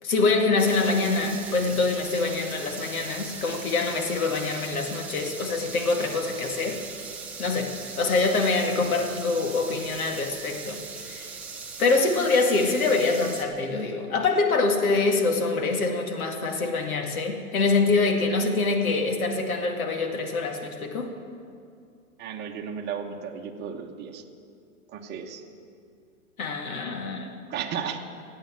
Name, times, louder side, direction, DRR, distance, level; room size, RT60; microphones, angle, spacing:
voice 1, 0.0-6.8 7.4-7.7 8.0-11.3 11.8-21.1 26.4-27.4, left 3 dB, 75° left, 3 dB, 2.2 m, -25 dB
sound 1, 0.6-13.4, right 5 dB, 5° right, 0.3 m, -39 dB
voice 2, 22.2-24.2 24.9-25.4 27.5-28.0, right 7 dB, 25° right, 2 dB, 1.2 m, -34 dB
14.5 x 9.0 x 7.6 m, 2.4 s
hypercardioid pair, 130°, 43 cm